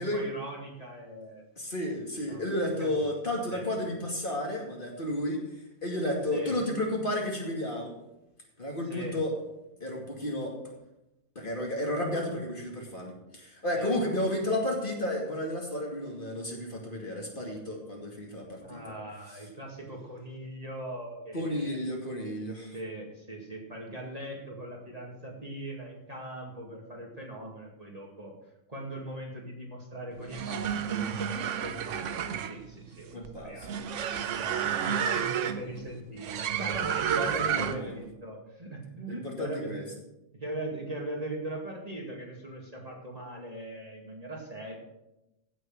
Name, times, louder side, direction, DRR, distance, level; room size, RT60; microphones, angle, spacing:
voice 1, 0.0-1.4 2.3-2.4 2.8-2.9 3.5-3.6 6.3-6.6 8.9-9.2 13.8-14.0 18.6-21.8 22.7-28.4 28.7-31.1 31.6-33.7 34.4-39.8 40.4-44.8, right 1 dB, 25° right, -2 dB, 2.4 m, -40 dB
voice 2, 1.6-5.4 5.8-7.9 8.6-9.3 9.8-10.5 11.3-18.8 21.3-22.8 33.1-33.7 37.2-38.1 39.1-39.8, left 1 dB, 35° left, -1 dB, 2.7 m, -32 dB
sound 1, 30.2-38.0, right 8 dB, 65° right, 1.0 m, -31 dB
15.5 x 6.5 x 6.0 m, 0.92 s
omnidirectional pair, 1.4 m